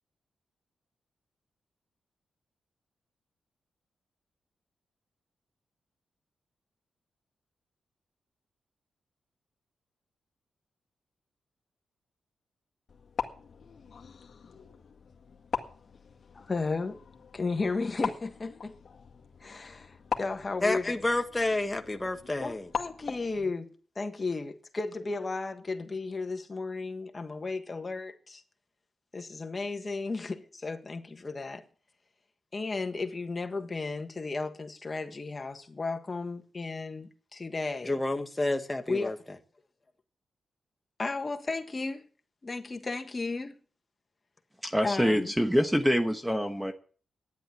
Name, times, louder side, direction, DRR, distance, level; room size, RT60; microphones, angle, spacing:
sound 1, 12.9-23.4, left 6 dB, 55° left, 1.9 m, -40 dB
voice 1, 16.3-17.0 17.3-18.8 19.4-20.9 22.4-28.4 29.1-31.6 32.5-37.9 38.9-39.1 41.0-42.0 42.4-43.6 44.8-45.3, left 3 dB, 30° left, 1.5 m, -34 dB
voice 2, 20.6-22.7 37.8-39.2, left 2 dB, 15° left, 1.6 m, -29 dB
voice 3, 44.6-46.7, equal, 5° right, 1.1 m, -25 dB
12.5 x 10.0 x 7.2 m
cardioid pair, 105°, 0 cm